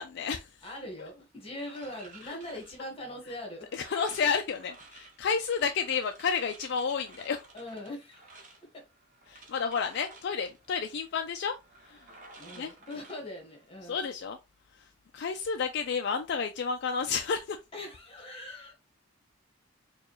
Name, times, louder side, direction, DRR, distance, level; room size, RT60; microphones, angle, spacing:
voice 1, 0.0-0.7 1.0-1.1 2.2-2.4 3.7-7.5 9.3-11.6 11.8-12.1 12.5-12.7 13.8-14.4 14.7-17.6, left 6 dB, 55° left, 0.4 m, -31 dB
voice 2, 0.6-3.7 7.5-8.3 12.4-14.0 17.7-18.7, left 1 dB, 30° left, 1.4 m, -41 dB
sound 1, 1.6-13.9, right 3 dB, 40° right, 0.8 m, -54 dB
4.6 x 2.3 x 3.0 m
head